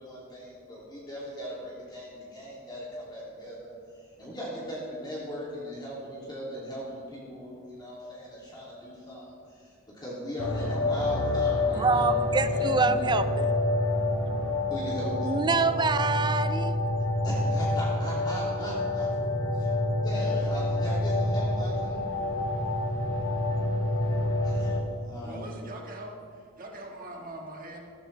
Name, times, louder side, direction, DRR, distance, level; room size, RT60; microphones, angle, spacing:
voice 1, 0.0-13.1 14.7-15.3 17.2-19.1 19.9-22.0 24.4-25.5, equal, 20° left, -7 dB, 2.6 m, -39 dB
sound 1, 10.4-24.8, left 2 dB, 70° left, 1.3 m, -27 dB
voice 2, 11.7-13.5 15.3-16.7, right 4 dB, 20° right, 12 dB, 0.4 m, -26 dB
voice 3, 25.2-27.8, right 1 dB, 40° right, 0 dB, 1.6 m, -42 dB
14.5 x 14.0 x 3.3 m, 2.3 s
head